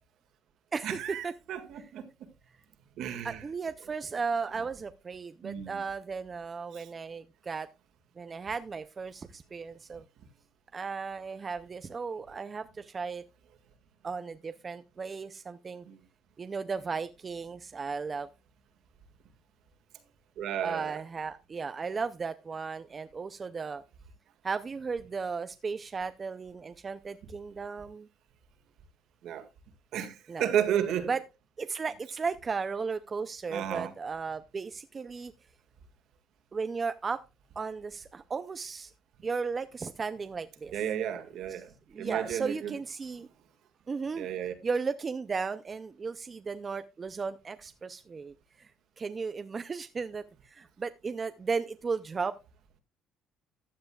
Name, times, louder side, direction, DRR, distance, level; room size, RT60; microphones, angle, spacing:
voice 1, 0.8-2.3 3.0-3.4 5.4-5.8 6.7-6.9 15.9-16.0 20.4-21.0 29.2-29.5 29.9-31.1 33.5-33.9 40.7-42.8 44.1-44.5, right 9 dB, 60° right, 1.8 m, -33 dB
voice 2, 3.2-7.7 8.2-10.0 10.7-13.2 14.0-15.8 16.4-18.3 20.6-23.8 24.4-28.1 30.3-30.5 31.1-31.2 31.6-35.3 36.5-37.2 37.6-38.9 39.2-40.7 41.9-43.3 43.9-44.3 44.6-48.7 49.0-52.4, right 5 dB, 20° right, 0.4 m, -35 dB
15.0 x 10.0 x 2.3 m
cardioid pair, 165°, 0 cm